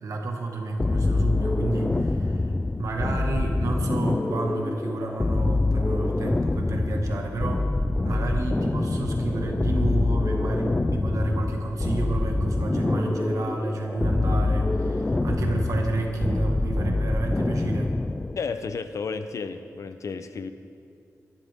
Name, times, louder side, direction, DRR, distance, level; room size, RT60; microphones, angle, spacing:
voice 1, 0.0-2.5 2.8-7.7 8.0-17.9, right 2 dB, 75° right, 2 dB, 1.8 m, -30 dB
sound 1, 0.8-18.4, left 2 dB, 15° left, 0.3 m, -25 dB
sound 2, 1.8-18.7, right 1 dB, 50° right, 1.7 m, -47 dB
voice 2, 18.4-20.5, left 5 dB, 65° left, 9 dB, 0.8 m, -32 dB
22.5 x 11.5 x 3.7 m, 2.4 s
wide cardioid pair, 170°, 6 cm